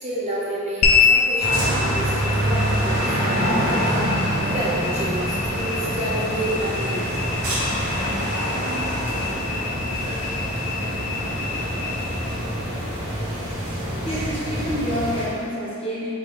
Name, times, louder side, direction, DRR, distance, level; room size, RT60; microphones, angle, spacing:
voice 1, 0.0-7.3 10.7-10.9, right 1 dB, 30° right, -7 dB, 0.5 m, -30 dB
sound 1, 0.8-15.4, left 6 dB, 75° left, 0.4 m, -28 dB
sound 2, 1.4-15.3, equal, 70° right, 1.5 m, -25 dB
voice 2, 14.0-16.1, equal, 25° left, -7 dB, 0.7 m, -27 dB
4.5 x 2.2 x 3.9 m, 2.4 s
head